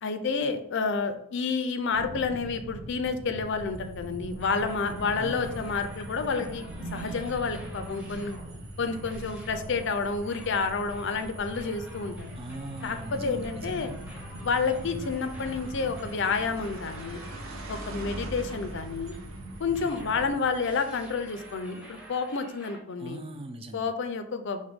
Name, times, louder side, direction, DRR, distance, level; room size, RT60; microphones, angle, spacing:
voice 1, 0.0-8.4 8.8-12.3 12.8-13.9 14.4-17.2 17.7-19.1 19.6-23.2 23.7-24.6, left 4 dB, 55° left, 8 dB, 0.5 m, -30 dB
sound 1, 1.9-20.3, right 1 dB, 45° right, 0.9 m, -42 dB
sound 2, 3.7-22.3, right 2 dB, 70° right, 0.9 m, -46 dB
sound 3, 4.4-19.3 19.7-22.8, right 1 dB, 5° right, 0.7 m, -50 dB
voice 2, 5.2-5.8 12.3-13.9 23.0-23.9, right 2 dB, 25° right, 7 dB, 0.3 m, -41 dB
5.9 x 2.2 x 3.5 m, 0.78 s
head